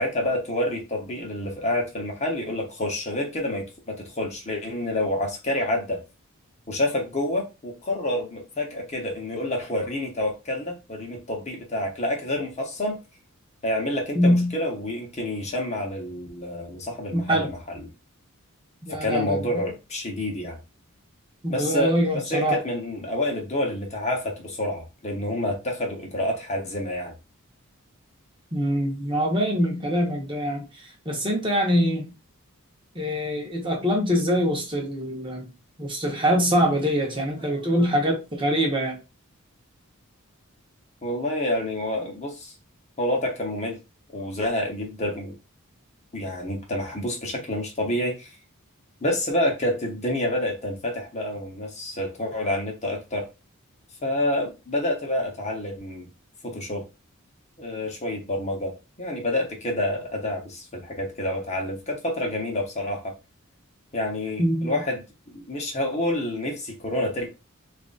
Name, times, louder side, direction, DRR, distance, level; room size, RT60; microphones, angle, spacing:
voice 1, 0.0-6.0 6.7-13.0 13.6-17.9 18.9-20.6 21.5-27.1 37.7-37.9 41.0-42.5 43.0-43.8 44.1-45.3 46.1-48.3 49.0-53.3 54.0-56.1 56.4-56.9 57.6-63.1 63.9-65.0 65.3-67.3, left 1 dB, 30° left, 0.9 m, -28 dB
voice 2, 14.1-14.5 17.1-17.5 18.9-19.6 21.4-22.6 28.5-32.1 32.9-35.5 35.8-39.0 64.4-64.7, equal, 25° right, 0.9 m, -24 dB
2.9 x 2.5 x 3.8 m
head